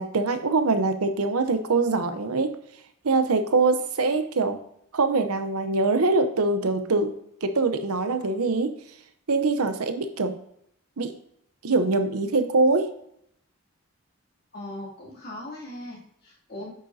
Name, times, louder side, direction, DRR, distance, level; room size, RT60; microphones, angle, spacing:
voice 1, 0.0-2.5 3.0-4.6 4.9-7.1 7.4-8.7 9.3-10.3 11.0-11.1 11.6-12.9, right 3 dB, 90° right, 9 dB, 0.8 m, -23 dB
voice 2, 14.5-16.7, left 1 dB, 45° left, -5 dB, 2.6 m, -39 dB
8.9 x 6.4 x 2.7 m, 0.71 s
head